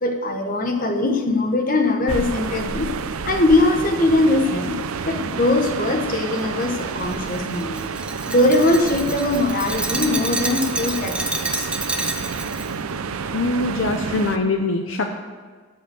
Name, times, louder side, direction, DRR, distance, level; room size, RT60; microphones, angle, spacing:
voice 1, 0.0-2.9 3.2-4.8 5.0-7.8 8.3-11.2 11.5-11.7, left 2 dB, 40° left, 3 dB, 1.1 m, -21 dB
sound 1, 2.1-14.4, right 5 dB, 80° right, 0.6 m, -29 dB
Glass, 6.4-12.7, right 2 dB, 5° right, 0.7 m, -29 dB
voice 2, 13.3-15.2, left 2 dB, 60° left, 4 dB, 0.7 m, -23 dB
13.5 x 5.6 x 7.8 m, 1.5 s
head